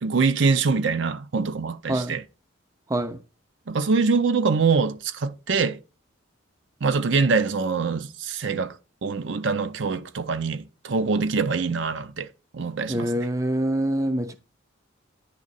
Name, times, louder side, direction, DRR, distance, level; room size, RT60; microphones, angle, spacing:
voice 1, 0.0-2.2 3.7-5.8 6.8-13.1, right 4 dB, 65° right, 0.5 m, -24 dB
voice 2, 12.9-14.3, right 1 dB, 15° right, 0.4 m, -25 dB
9.8 x 3.6 x 4.0 m
head